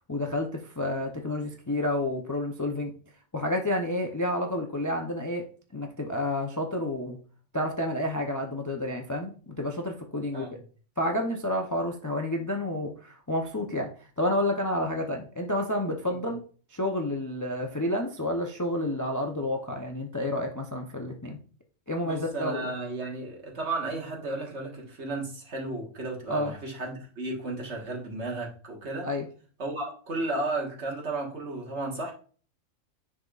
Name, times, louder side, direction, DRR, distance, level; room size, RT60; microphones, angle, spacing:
voice 1, 0.1-2.9 3.3-5.4 5.7-7.2 7.5-10.5 11.0-13.9 14.2-16.4 16.7-21.4 21.9-22.7 26.3-26.5 29.0-29.3, left 1 dB, 20° left, 2 dB, 0.5 m, -30 dB
voice 2, 22.0-29.1 29.6-32.1, right 2 dB, 55° right, -1 dB, 1.8 m, -34 dB
10.0 x 4.2 x 2.4 m, 0.41 s
omnidirectional pair, 1.4 m